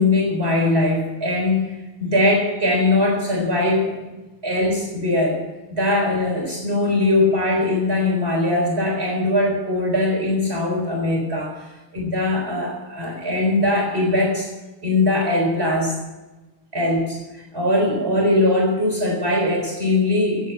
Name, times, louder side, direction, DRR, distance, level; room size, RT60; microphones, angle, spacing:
voice 1, 0.0-1.7 2.0-4.1 4.4-5.4 5.7-11.7 11.9-14.5 14.8-16.0 16.7-17.2 17.5-20.5, left 2 dB, 30° right, 0 dB, 4.4 m, -20 dB
14.5 x 8.2 x 8.4 m, 1.1 s
omnidirectional pair, 2.2 m